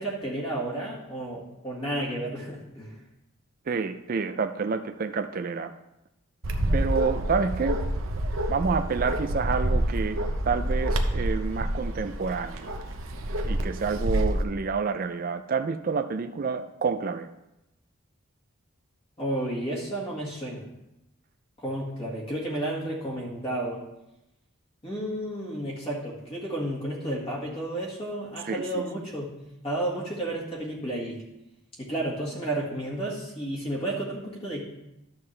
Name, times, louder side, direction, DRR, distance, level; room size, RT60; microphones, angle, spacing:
voice 1, 0.0-2.9 19.2-20.6 21.6-23.8 24.8-29.3 29.6-31.2 31.8-34.6, right 1 dB, 25° left, -4 dB, 1.7 m, -32 dB
voice 2, 3.7-5.7 6.7-7.8 8.5-10.2 10.5-12.8 13.4-17.3 28.4-28.9, right 5 dB, 40° right, 8 dB, 0.4 m, -28 dB
Bark, 6.4-14.4, right 1 dB, 75° right, 0.8 m, -28 dB
12.0 x 7.3 x 3.3 m, 0.91 s
head